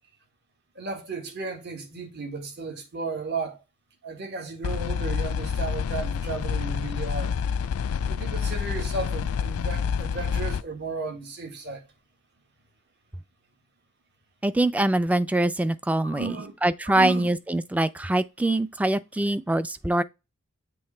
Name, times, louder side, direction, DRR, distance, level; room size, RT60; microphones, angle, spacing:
voice 1, 0.7-3.6 4.0-7.4 8.1-11.8 16.0-16.5 16.8-17.3, right 4 dB, 55° right, 1.7 m, -34 dB
sound 1, 4.6-10.6, left 6 dB, 85° left, 0.4 m, -28 dB
voice 2, 14.4-16.4 16.6-20.0, right 1 dB, 5° right, 0.3 m, -24 dB
7.7 x 3.2 x 4.2 m
head